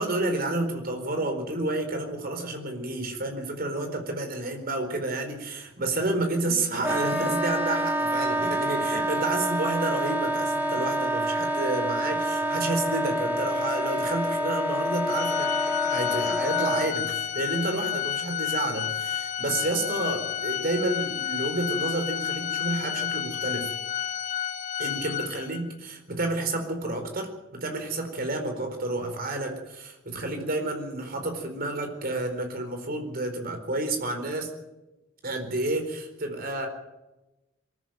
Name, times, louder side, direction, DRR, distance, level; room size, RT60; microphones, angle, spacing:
voice 1, 0.0-23.7 24.8-34.5 35.2-36.7, right 2 dB, 50° right, 5 dB, 4.4 m, -30 dB
Wind instrument woodwind instrument, 6.8-16.9, equal, 10° right, 1.9 m, -27 dB
Organ, 15.1-25.7, left 9 dB, 40° left, 1.3 m, -31 dB
23.0 x 14.0 x 9.3 m, 1.0 s
head